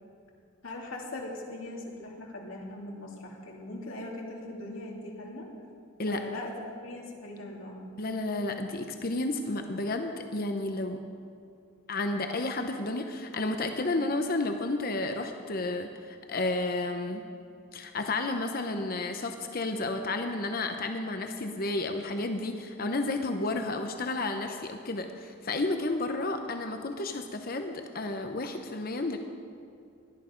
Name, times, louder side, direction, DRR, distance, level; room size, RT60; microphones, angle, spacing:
voice 1, 0.6-5.5 6.1-7.9, left 1 dB, 80° left, -2 dB, 2.7 m, -40 dB
voice 2, 8.0-11.0 11.9-17.2 17.7-29.2, left 2 dB, 45° left, 5 dB, 0.8 m, -31 dB
17.5 x 11.5 x 5.2 m, 2.4 s
head